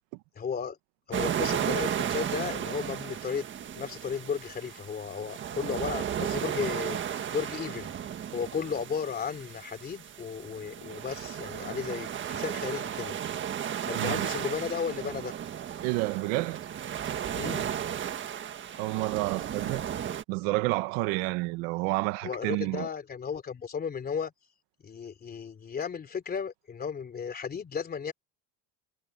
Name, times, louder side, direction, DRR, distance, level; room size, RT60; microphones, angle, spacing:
voice 1, 0.4-0.8 1.1-3.5 3.7-7.9 8.3-13.2 13.8-15.3 17.3-17.7 22.2-24.3 24.8-28.1, left 6 dB, 25° left, 3.4 m, -34 dB
sound 1, 1.1-20.2, right 9 dB, 35° right, 1.6 m, -34 dB
voice 2, 13.9-14.3 15.8-16.7 18.8-19.9 20.3-22.9, right 22 dB, 85° right, 1.3 m, -29 dB
cardioid pair, 140°, 35 cm